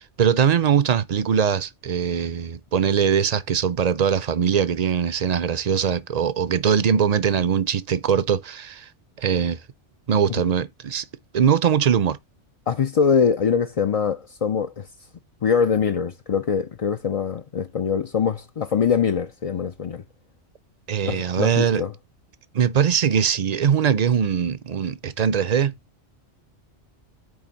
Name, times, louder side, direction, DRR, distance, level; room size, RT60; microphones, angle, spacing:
voice 1, 0.0-8.9 9.2-9.6 10.1-11.0 11.3-12.2 20.9-21.8 22.5-25.7, right 7 dB, 45° right, 0.5 m, -21 dB
voice 2, 12.7-14.9 15.4-20.0 21.0-21.9, left 6 dB, 50° left, 0.4 m, -23 dB
8.8 x 3.5 x 5.2 m
omnidirectional pair, 1.2 m